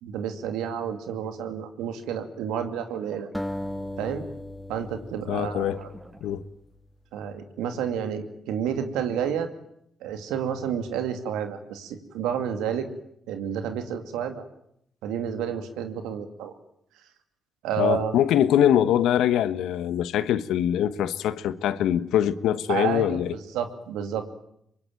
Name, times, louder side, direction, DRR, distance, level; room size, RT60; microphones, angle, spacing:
voice 1, 0.0-3.3 4.0-4.2 4.7-5.9 7.1-9.5 10.0-12.9 13.3-14.4 15.0-16.5 17.6-18.2 22.7-24.3, right 8 dB, 85° right, 2.5 m, -30 dB
sound 1, 2.8-4.0 5.7-7.0, right 1 dB, 30° right, 6.7 m, -51 dB
sound 2, 3.3-6.6, left 1 dB, 5° left, 1.6 m, -37 dB
voice 2, 5.3-5.8 6.2-6.4 17.8-23.3, left 10 dB, 80° left, 1.2 m, -23 dB
24.0 x 21.5 x 9.2 m
supercardioid pair, 65°, 0 cm